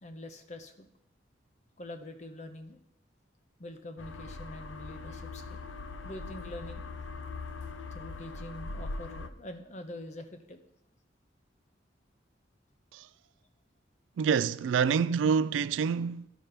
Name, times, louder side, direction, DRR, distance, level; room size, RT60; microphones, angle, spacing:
voice 1, 0.0-0.9 1.8-2.8 3.6-5.6 6.0-6.9 7.9-10.6, left 1 dB, 40° left, 0.8 m, -44 dB
sound 1, 4.0-9.3, left 3 dB, 80° left, 0.6 m, -41 dB
voice 2, 14.2-16.3, right 6 dB, 85° right, 0.3 m, -27 dB
11.5 x 5.8 x 5.1 m
head